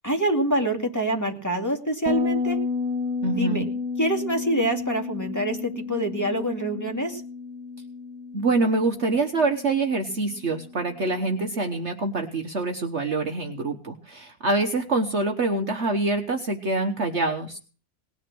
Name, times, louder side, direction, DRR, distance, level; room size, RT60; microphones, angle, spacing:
voice 1, 0.0-2.6 3.4-3.7 4.0-7.2, right 1 dB, 10° left, 2 dB, 2.5 m, -26 dB
Bass guitar, 2.1-11.4, left 4 dB, 65° right, 1.9 m, -32 dB
voice 2, 3.2-3.6 8.3-17.6, right 3 dB, 50° right, 4 dB, 1.4 m, -25 dB
19.5 x 9.9 x 6.1 m, 0.39 s
omnidirectional pair, 1.7 m